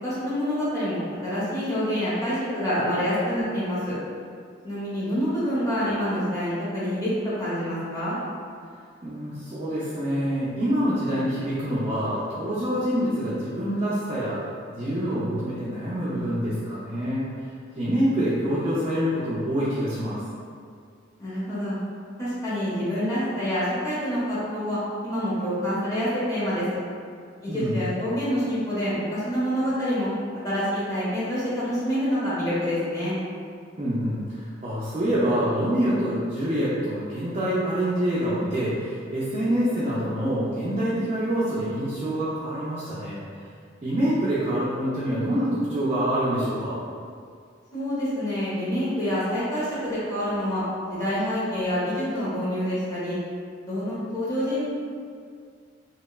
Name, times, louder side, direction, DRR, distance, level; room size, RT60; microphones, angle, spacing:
voice 1, 0.0-3.9 4.6-7.1 7.4-8.2 21.2-21.8 22.2-26.6 27.4-30.1 30.4-33.1 47.7-50.6 50.9-53.2 53.7-54.7, equal, 20° left, -10 dB, 0.7 m, -27 dB
voice 2, 9.0-14.4 14.7-17.3 17.7-20.2 27.5-27.9 33.8-43.2 43.8-46.8, equal, 30° right, -9 dB, 0.4 m, -26 dB
2.8 x 2.1 x 2.2 m, 2.2 s
head